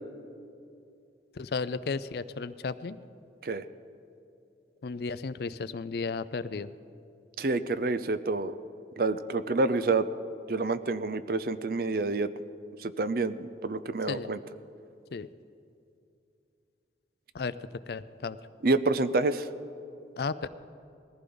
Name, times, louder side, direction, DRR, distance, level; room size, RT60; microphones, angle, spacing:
voice 1, 1.3-3.0 4.8-6.7 14.1-14.3 15.1-15.3 17.3-18.4 20.2-20.5, left 4 dB, 60° left, 15 dB, 0.4 m, -34 dB
voice 2, 7.4-8.5 9.0-10.1 10.5-12.3 12.8-14.4 18.6-19.5, right 3 dB, 55° right, 12 dB, 0.5 m, -28 dB
20.5 x 14.5 x 3.9 m, 2.6 s
head